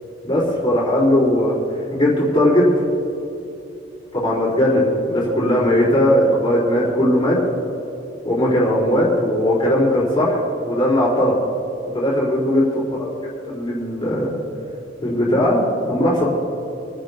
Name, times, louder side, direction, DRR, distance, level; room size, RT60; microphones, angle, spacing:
voice 1, 0.2-2.8 4.1-7.4 8.2-11.4 11.9-13.1 13.5-14.4 15.0-16.2, left 1 dB, 25° left, -6 dB, 3.8 m, -18 dB
28.0 x 11.0 x 2.8 m, 2.8 s
head